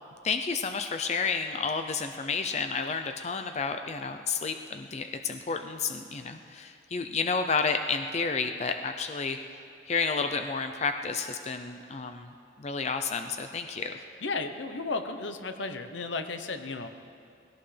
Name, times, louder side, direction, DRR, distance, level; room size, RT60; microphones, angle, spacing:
voice 1, 0.2-9.4 9.9-12.3 12.6-14.0, left 5 dB, 35° left, 7 dB, 0.5 m, -31 dB
voice 2, 14.2-16.9, left 3 dB, 80° left, 8 dB, 0.9 m, -34 dB
20.0 x 17.0 x 3.4 m, 2.4 s
head